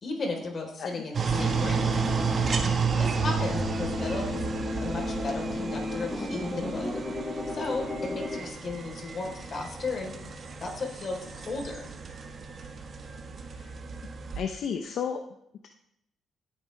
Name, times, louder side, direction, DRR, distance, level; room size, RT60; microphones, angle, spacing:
voice 1, 0.0-2.0 2.9-4.5 4.8-7.0 7.5-10.2 10.6-11.9, left 3 dB, 45° left, 1 dB, 4.1 m, -35 dB
sound 1, 1.1-14.4, right 5 dB, 45° right, 1.6 m, -32 dB
sound 2, 1.3-8.4, left 2 dB, 20° left, 5.5 m, -33 dB
voice 2, 14.4-15.2, left 7 dB, 70° left, 5 dB, 0.9 m, -32 dB
16.5 x 9.4 x 3.5 m, 0.77 s
cardioid pair, 90°, 0 cm